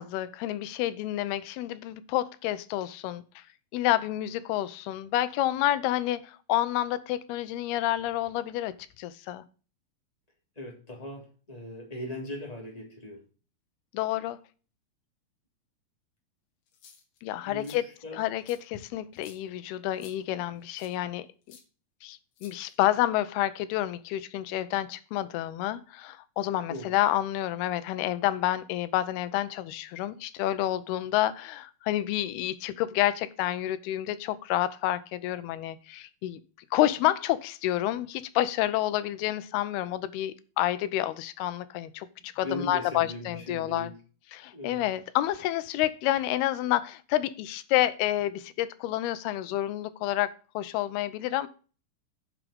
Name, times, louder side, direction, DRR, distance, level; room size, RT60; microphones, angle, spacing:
voice 1, 0.0-3.4 3.7-9.4 13.9-14.4 17.2-17.8 18.1-21.6 22.0-36.4 36.7-43.9 44.3-51.5, left 14 dB, 90° left, 2.7 m, -29 dB
voice 2, 10.5-13.2 17.4-18.2 26.7-26.9 42.4-43.9 44.5-44.8, left 1 dB, 10° left, 2.8 m, -39 dB
sound 1, 16.7-17.2 17.6-17.8 18.5-18.6 19.2-19.4 20.0-20.2 20.8-21.0 21.5-21.6 22.4-23.0, left 6 dB, 70° left, 3.4 m, -53 dB
9.6 x 6.3 x 5.1 m
omnidirectional pair, 4.4 m